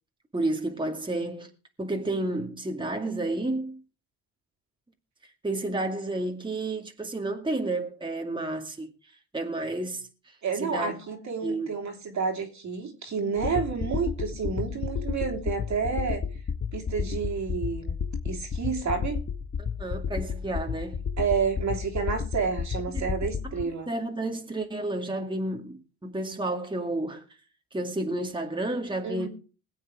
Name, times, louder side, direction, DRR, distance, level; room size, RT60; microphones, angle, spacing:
voice 1, 0.3-1.5 1.8-3.8 5.4-8.9 9.3-11.0 11.4-11.7 19.8-21.1 22.9-23.1 23.4-27.3 27.7-29.3, right 2 dB, 15° right, 2.2 m, -31 dB
voice 2, 10.4-16.2 16.7-17.9 18.2-19.2 21.2-23.9 29.0-29.3, right 5 dB, 55° right, 3.1 m, -30 dB
sound 1, 13.4-23.6, left 6 dB, 40° left, 1.2 m, -32 dB
20.5 x 8.0 x 4.9 m
cardioid pair, 80°, 34 cm